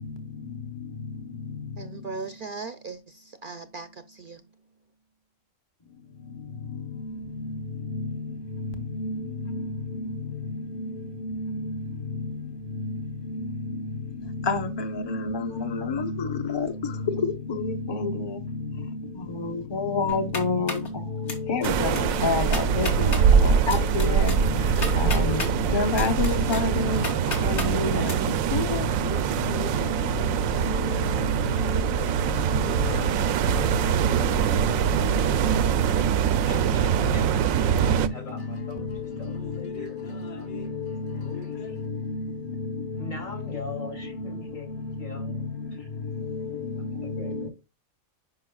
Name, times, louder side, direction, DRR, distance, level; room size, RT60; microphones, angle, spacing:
voice 1, 1.8-4.5, right 4 dB, 55° right, 0.6 m, -38 dB
voice 2, 14.5-15.4 15.9-16.1 16.5-16.6 17.6-17.7 18.0-18.1 19.7-20.7 21.5-21.9 22.2-22.9 23.7-24.3 25.0-25.4 25.7-27.0 27.5-28.0 28.5-28.6, left 4 dB, 25° left, 0.8 m, -26 dB
sound 1, 20.1-20.9 21.3-21.7 21.9-22.0 22.4-23.2 23.7-25.5 25.9-27.7 28.0-28.1, left 3 dB, 60° left, 2.3 m, -33 dB
sound 2, 21.6-38.1, right 8 dB, 90° right, 1.0 m, -23 dB
sound 3, 23.0-41.9, left 1 dB, 40° left, 1.3 m, -43 dB
voice 3, 34.2-34.8 35.0-36.1 36.5-40.7 41.1-41.8 43.0-44.7 45.0-45.4 45.7-45.9 46.8-47.5, left 2 dB, 75° left, 3.2 m, -43 dB
9.7 x 5.5 x 2.3 m
omnidirectional pair, 1.4 m